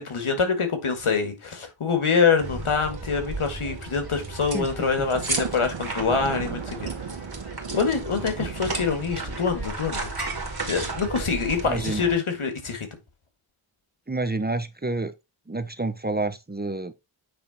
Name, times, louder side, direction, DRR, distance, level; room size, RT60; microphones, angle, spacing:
voice 1, 0.0-6.8 7.7-10.1 10.6-12.9, left 5 dB, 90° left, 1.8 m, -25 dB
sound 1, 2.4-12.2, right 2 dB, 50° right, 2.6 m, -34 dB
voice 2, 4.5-4.9 11.7-12.0 14.1-15.1 15.5-16.9, right 2 dB, 20° right, 0.8 m, -29 dB
Thunder, 5.1-9.7, right 7 dB, 80° right, 0.9 m, -36 dB
8.8 x 3.6 x 4.1 m
wide cardioid pair, 65°, 48 cm